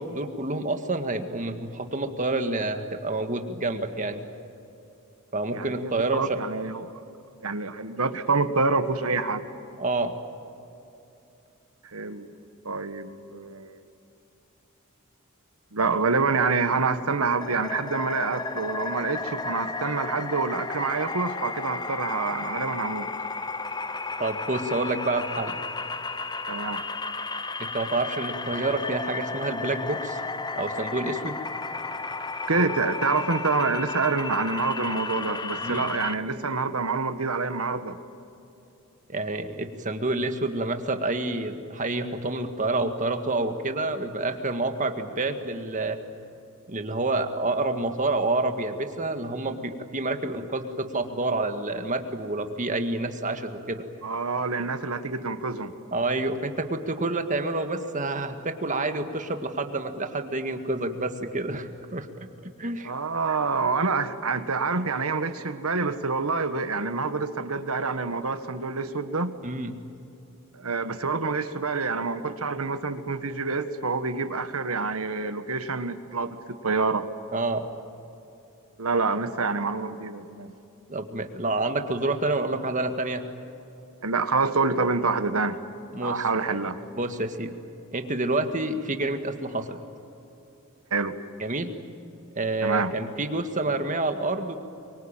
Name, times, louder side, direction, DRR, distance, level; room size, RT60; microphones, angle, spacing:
voice 1, 0.0-4.3 5.3-6.4 9.8-10.2 24.2-25.6 27.6-30.2 30.5-31.4 35.6-35.8 39.1-46.0 46.7-53.9 55.9-62.1 62.4-62.9 69.4-69.7 77.3-77.7 80.9-83.3 85.9-86.3 86.9-87.6 87.9-89.8 91.4-91.8 92.4-94.6, right 2 dB, 35° right, 6 dB, 1.8 m, -28 dB
voice 2, 5.5-6.9 7.4-9.4 11.9-12.3 12.6-13.8 15.7-23.1 26.5-26.8 32.5-38.0 54.0-55.7 62.8-69.4 70.5-77.1 78.8-80.5 84.0-85.6 86.0-86.8 90.9-91.2 92.6-92.9, right 4 dB, 80° right, 10 dB, 1.6 m, -27 dB
sound 1, 17.4-36.1, left 3 dB, 20° left, 0.7 m, -33 dB
24.0 x 24.0 x 9.0 m, 2.8 s
head